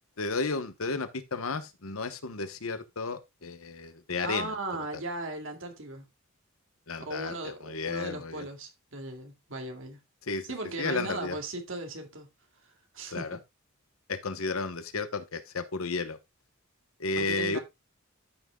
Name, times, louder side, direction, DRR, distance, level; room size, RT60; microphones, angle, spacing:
voice 1, 0.2-4.5 6.9-8.5 10.3-10.5 10.8-11.4 13.1-13.4 14.1-16.2 17.0-17.6, left 3 dB, 70° left, 1.0 m, -33 dB
voice 2, 4.2-6.1 7.0-10.0 10.4-12.3 12.6-13.3 17.2-17.6, right 2 dB, 60° right, 2.4 m, -37 dB
13.0 x 6.2 x 2.3 m
head